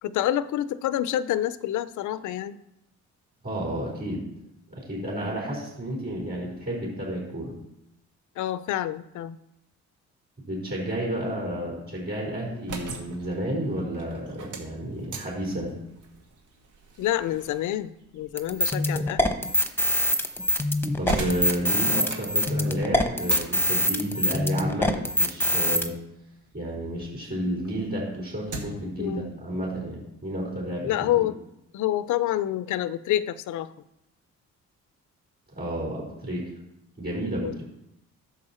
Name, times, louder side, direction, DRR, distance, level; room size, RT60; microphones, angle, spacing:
voice 1, 0.0-2.6 8.4-9.4 17.0-19.3 29.0-29.3 30.8-31.3 31.7-33.7 37.4-37.6, left 12 dB, 75° left, 16 dB, 0.6 m, -27 dB
voice 2, 3.4-4.2 4.7-7.5 10.5-15.8 20.9-25.9 26.5-31.3 35.5-36.5 37.0-37.6, right 1 dB, 30° right, -4 dB, 4.3 m, -31 dB
sound 1, 12.5-27.2 27.6-29.0, right 3 dB, 80° right, 2.1 m, -41 dB
sound 2, 18.4-25.9, left 1 dB, 5° left, 0.9 m, -24 dB
11.0 x 7.0 x 4.3 m, 0.84 s
cardioid pair, 90°, 30 cm